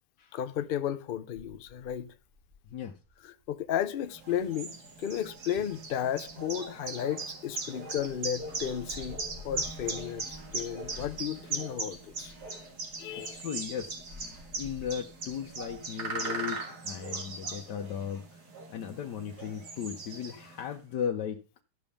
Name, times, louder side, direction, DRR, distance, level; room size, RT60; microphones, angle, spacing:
voice 1, 0.3-2.1 3.2-4.7 5.0-12.3 13.0-13.4, left 9 dB, 60° left, 0.5 m, -34 dB
sound 1, 1.4-7.3 7.8-15.8, left 2 dB, 40° right, 3.5 m, -52 dB
sound 2, 4.1-20.7, right 3 dB, 70° right, 2.4 m, -39 dB
voice 2, 13.2-18.4 18.7-21.4, left 8 dB, 80° left, 1.4 m, -37 dB
12.5 x 5.3 x 7.0 m
omnidirectional pair, 1.8 m